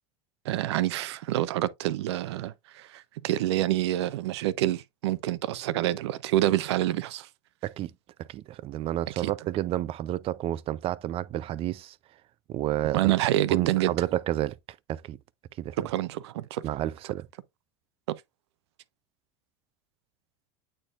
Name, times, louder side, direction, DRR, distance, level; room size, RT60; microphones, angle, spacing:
voice 1, 0.4-7.3 9.2-9.3 12.9-13.9 15.8-16.6 18.1-18.2, right 14 dB, 85° right, 0.6 m, -27 dB
voice 2, 8.2-12.0 12.5-13.1 13.5-14.6 14.9-15.2 15.6-15.8 16.6-17.3, right 13 dB, 45° right, 0.5 m, -30 dB
8.7 x 4.4 x 2.5 m
supercardioid pair, 105°, 14 cm